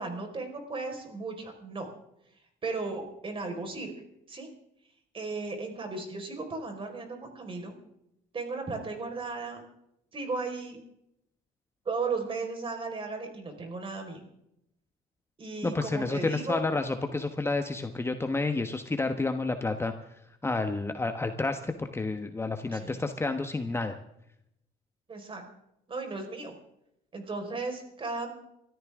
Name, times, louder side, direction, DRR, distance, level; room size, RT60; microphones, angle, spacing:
voice 1, 0.0-1.9 2.6-3.9 4.3-4.5 5.1-7.8 8.3-9.6 10.1-10.8 11.8-14.2 15.4-16.6 22.7-23.0 25.1-25.4 25.9-26.5 27.1-28.3, right 3 dB, 30° right, 4 dB, 4.9 m, -35 dB
voice 2, 15.6-19.9 20.4-24.0, left 3 dB, 15° left, 7 dB, 1.2 m, -30 dB
24.5 x 14.0 x 3.7 m, 0.79 s
cardioid pair, 110°, 17 cm